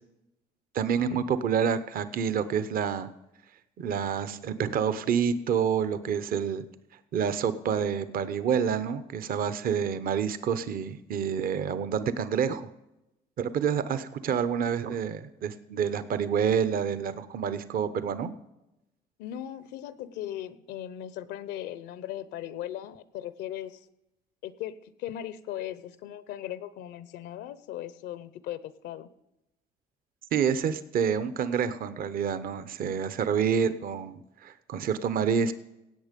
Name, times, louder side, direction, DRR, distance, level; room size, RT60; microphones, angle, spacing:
voice 1, 0.7-3.1 3.8-6.6 7.1-12.7 13.4-18.3 30.3-35.5, right 7 dB, 60° right, 14 dB, 0.9 m, -28 dB
voice 2, 19.2-23.8 24.4-29.1, left 12 dB, 90° left, 16 dB, 0.8 m, -38 dB
17.0 x 8.3 x 5.3 m, 0.92 s
cardioid pair, 110°, 17 cm